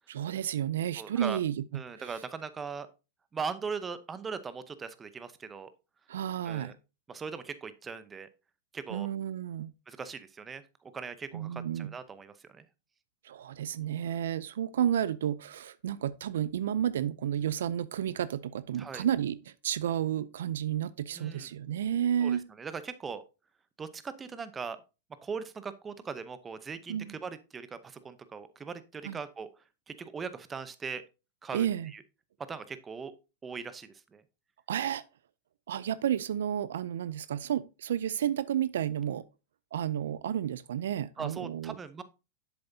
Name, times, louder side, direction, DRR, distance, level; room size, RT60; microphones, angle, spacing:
voice 1, 0.1-2.1 6.1-6.7 8.9-9.7 11.3-11.9 13.2-19.4 19.6-22.4 26.9-27.2 29.0-29.2 31.5-31.9 34.7-35.0 35.7-39.2 39.7-41.8, right 10 dB, 80° right, 0.4 m, -31 dB
voice 2, 1.0-1.4 1.7-2.9 3.3-5.7 6.4-6.7 7.1-8.3 8.7-9.1 9.9-12.6 18.8-19.1 21.1-21.5 22.2-23.2 23.8-24.8 25.2-29.5 29.9-31.0 31.4-31.7 31.9-32.0 32.5-33.1 33.4-34.2 41.2-42.0, right 5 dB, 20° right, 0.7 m, -40 dB
7.7 x 7.1 x 2.7 m
hypercardioid pair, 120°, 0 cm